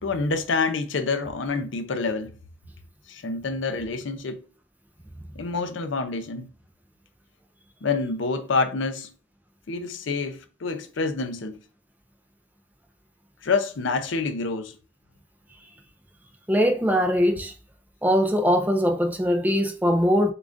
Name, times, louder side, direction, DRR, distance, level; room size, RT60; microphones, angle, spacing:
voice 1, 0.0-2.3 3.1-4.4 5.4-6.5 7.8-9.1 9.7-11.6 13.4-14.7, left 4 dB, 70° left, 0.5 m, -27 dB
voice 2, 16.5-17.5 18.0-20.3, equal, 10° right, 0.4 m, -21 dB
6.7 x 2.5 x 2.5 m
head